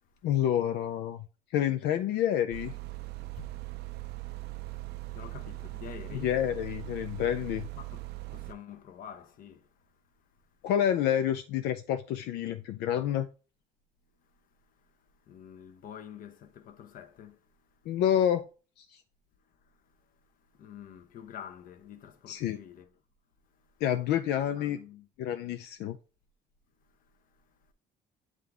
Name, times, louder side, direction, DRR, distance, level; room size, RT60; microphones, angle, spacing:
voice 1, 0.2-1.2 1.5-2.7 6.1-7.7 10.6-13.3 17.9-18.5 18.8-18.9 22.3-22.6 23.8-24.8 25.2-26.0, left 10 dB, 80° left, 0.4 m, -28 dB
sound 1, 2.5-8.5, right 20 dB, 75° right, 0.5 m, -40 dB
voice 2, 5.1-6.4 7.8-8.0 8.3-9.6 15.3-17.4 20.6-22.9 24.3-25.1, left 9 dB, 55° left, 0.8 m, -47 dB
7.8 x 3.8 x 3.5 m
cardioid pair, 110°, 17 cm